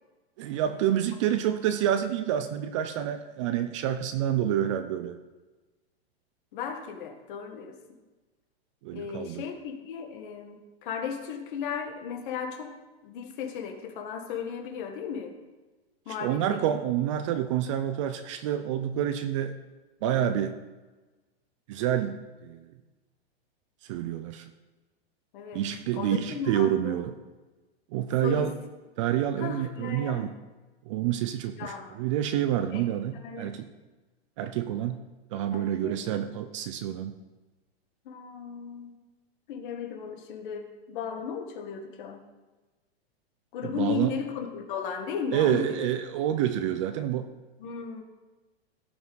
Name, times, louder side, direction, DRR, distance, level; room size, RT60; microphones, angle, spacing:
voice 1, 0.4-5.2 8.8-9.4 16.2-19.6 20.0-20.5 21.7-22.7 23.8-24.5 25.5-27.1 27.9-28.5 29.0-30.4 30.9-33.7 34.4-35.0 35.3-37.2 43.6-44.1 45.3-47.3, right 10 dB, 30° right, 9 dB, 0.4 m, -28 dB
voice 2, 6.5-7.8 8.9-12.8 13.0-15.4 16.0-16.8 25.3-25.6 25.9-27.0 28.2-28.5 29.4-30.3 31.6-32.0 32.7-32.9 33.2-33.6 35.5-36.0 38.0-39.0 39.5-42.2 43.5-45.9 47.6-48.0, left 7 dB, 50° left, 5 dB, 1.6 m, -36 dB
16.0 x 5.9 x 4.0 m, 1.2 s
supercardioid pair, 155°, 32 cm